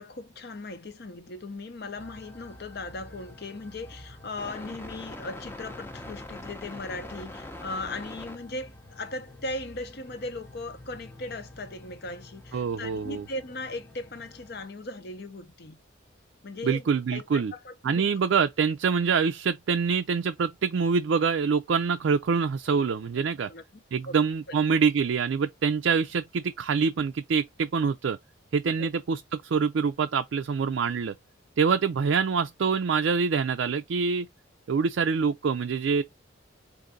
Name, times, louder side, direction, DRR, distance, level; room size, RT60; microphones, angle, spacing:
voice 1, 0.0-15.8 16.4-18.1 23.4-24.2 28.8-28.9, left 2 dB, 55° left, 0.7 m, -38 dB
sound 1, 2.0-14.7, left 1 dB, 10° left, 0.6 m, -45 dB
voice 2, 12.5-13.2 16.6-17.5 17.8-23.5 23.9-28.2 28.5-31.2 31.6-34.3 34.7-36.0, right 5 dB, 65° right, 0.4 m, -25 dB
3.9 x 2.6 x 3.6 m
head